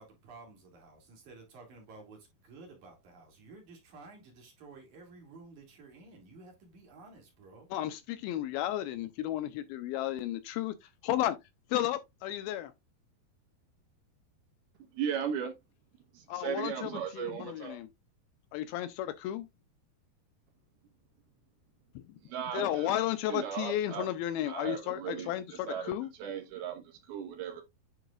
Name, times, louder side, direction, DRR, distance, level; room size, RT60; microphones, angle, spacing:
voice 1, 0.0-7.7, right 3 dB, 50° right, 3.4 m, -53 dB
voice 2, 7.7-11.4 11.7-12.7 16.3-17.9 18.5-19.5 22.5-26.1, left 12 dB, 80° left, 2.3 m, -33 dB
voice 3, 14.9-15.5 16.1-17.8 22.3-22.9 23.3-24.1 24.5-25.3 25.7-25.9 26.2-27.6, right 8 dB, 75° right, 3.2 m, -36 dB
9.1 x 4.8 x 2.4 m
omnidirectional pair, 4.6 m